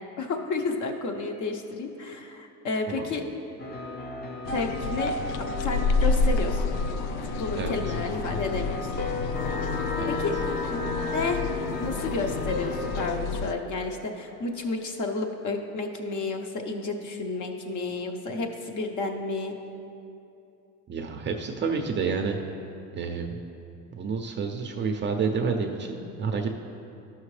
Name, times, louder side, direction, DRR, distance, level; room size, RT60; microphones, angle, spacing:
voice 1, 0.2-3.2 4.5-6.7 7.3-8.9 10.1-10.4 10.7-11.4 11.8-19.6, left 3 dB, 45° left, 4 dB, 0.9 m, -31 dB
sound 1, 3.6-13.2, left 2 dB, 25° left, 0.7 m, -35 dB
sound 2, 4.4-13.5, left 4 dB, 70° left, 0.5 m, -30 dB
voice 2, 7.6-7.9 10.0-10.2 20.9-22.4 22.9-23.4 23.9-26.5, right 5 dB, 25° right, 3 dB, 0.5 m, -29 dB
sound 3, 9.3-14.1 14.5-14.6, left 3 dB, 90° left, 1.1 m, -35 dB
12.5 x 5.8 x 3.2 m, 2.8 s
supercardioid pair, 120°, 42 cm